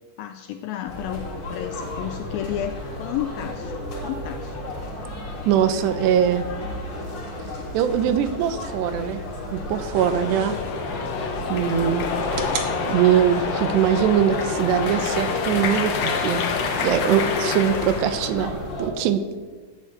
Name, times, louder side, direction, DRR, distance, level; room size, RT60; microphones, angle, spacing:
voice 1, 0.2-3.7 4.0-4.8 12.5-12.6, left 12 dB, 90° left, 8 dB, 2.1 m, -32 dB
sound 1, 0.9-18.9, left 1 dB, 40° left, 3.9 m, -33 dB
voice 2, 5.5-6.5 7.7-9.2 9.5-10.6 11.5-12.1 12.9-16.5 16.8-18.5 18.8-19.2, right 9 dB, 90° right, 10 dB, 3.1 m, -22 dB
sound 2, 9.8-16.8, right 5 dB, 60° right, 2.3 m, -39 dB
sound 3, 9.9-18.3, left 5 dB, 60° left, 1.8 m, -27 dB
13.0 x 9.5 x 8.7 m, 1.4 s
omnidirectional pair, 4.8 m